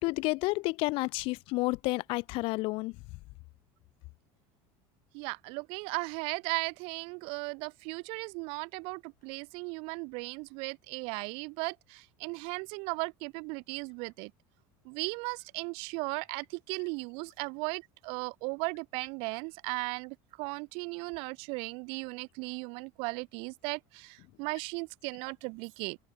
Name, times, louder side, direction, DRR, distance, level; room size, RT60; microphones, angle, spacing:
voice 1, 0.0-3.0, left 23 dB, 65° left, 0.8 m, -30 dB
voice 2, 5.1-14.3 14.8-26.0, right 31 dB, 70° right, 0.8 m, -37 dB
open air
supercardioid pair, 110°, 10 cm